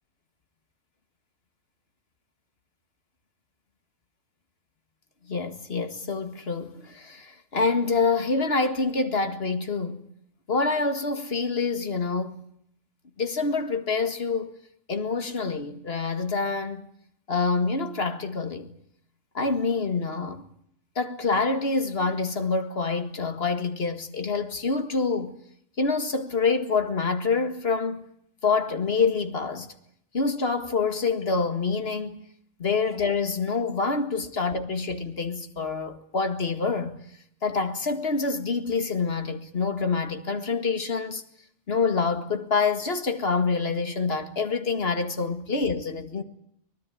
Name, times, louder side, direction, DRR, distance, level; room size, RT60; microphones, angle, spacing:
voice 1, 5.3-10.1 10.5-12.4 13.2-14.5 14.9-16.9 17.3-18.7 19.3-20.4 21.0-25.3 25.8-28.1 28.4-29.7 30.1-32.3 32.6-37.0 37.4-41.2 41.7-46.2, left 4 dB, 50° left, 2.1 m, -26 dB
24.0 x 20.0 x 8.5 m
omnidirectional pair, 1.3 m